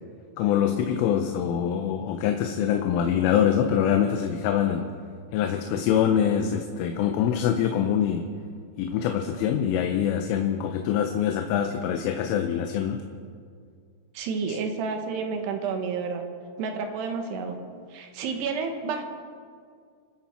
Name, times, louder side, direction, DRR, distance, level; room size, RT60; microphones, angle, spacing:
voice 1, 0.4-4.9 5.3-8.3 8.8-13.0, left 9 dB, 90° left, 5 dB, 3.4 m, -24 dB
voice 2, 14.1-16.2 16.6-17.6 17.9-19.1, right 5 dB, 70° right, 5 dB, 3.0 m, -30 dB
28.5 x 9.9 x 4.4 m, 2.1 s
omnidirectional pair, 5.5 m